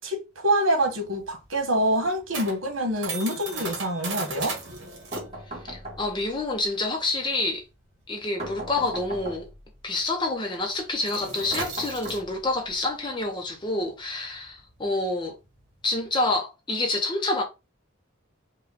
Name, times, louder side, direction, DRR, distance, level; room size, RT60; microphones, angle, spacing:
voice 1, 0.0-4.6, right 1 dB, 80° right, 1.3 m, -26 dB
sound 1, 0.8-9.8 10.0-10.3 10.6-16.3, right 3 dB, 65° right, 1.7 m, -38 dB
sound 2, 5.1-6.4 8.4-9.7 11.5-12.7, right 1 dB, 30° right, 1.6 m, -38 dB
voice 2, 5.6-7.6 8.1-9.5 9.8-15.4 15.8-17.4, left 2 dB, 25° left, 0.6 m, -28 dB
4.9 x 2.3 x 4.1 m
head